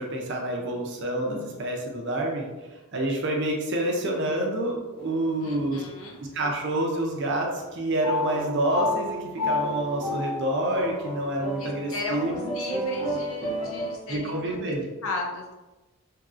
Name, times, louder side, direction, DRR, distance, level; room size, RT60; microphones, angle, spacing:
voice 1, 0.0-2.5 2.9-5.8 6.3-9.2 9.4-12.5 14.1-14.9, right 1 dB, 50° right, 0 dB, 0.5 m, -28 dB
sound 1, 5.0-5.7 6.4-7.0 8.0-14.0, left 1 dB, 25° left, 0.6 m, -31 dB
voice 2, 5.4-6.2 11.6-14.7 15.0-15.5, left 2 dB, 65° left, 0 dB, 0.6 m, -36 dB
3.0 x 2.6 x 2.4 m, 1.1 s
head